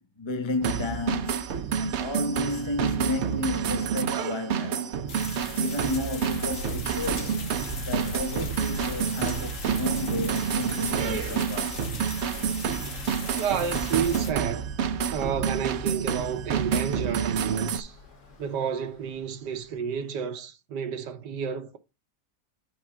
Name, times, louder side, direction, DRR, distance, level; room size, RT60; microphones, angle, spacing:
voice 1, 0.2-4.9 5.6-7.4 7.9-11.9, left 2 dB, 20° left, 0.9 m, -32 dB
sound 1, 0.6-17.8, right 7 dB, 65° right, 0.7 m, -29 dB
sound 2, 5.1-14.3, left 3 dB, 50° left, 1.5 m, -38 dB
Bus / Traffic noise roadway noise, 7.7-20.2, left 2 dB, 80° left, 2.4 m, -44 dB
voice 2, 13.3-14.7 15.1-18.0 18.4-21.8, right 7 dB, 80° right, 1.5 m, -30 dB
7.9 x 3.6 x 5.8 m
omnidirectional pair, 1.8 m